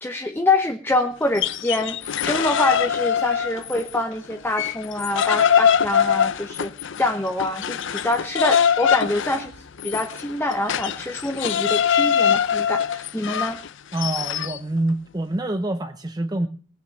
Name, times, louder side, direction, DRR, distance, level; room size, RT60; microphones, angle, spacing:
voice 1, 0.0-6.7 7.0-9.5 9.8-13.6, left 2 dB, 10° left, 4 dB, 0.8 m, -25 dB
sound 1, 1.2-4.0 4.3-14.6, left 8 dB, 60° left, 0.6 m, -23 dB
voice 2, 13.9-16.5, right 1 dB, 20° right, 7 dB, 0.6 m, -26 dB
18.5 x 6.3 x 8.4 m, 0.44 s
head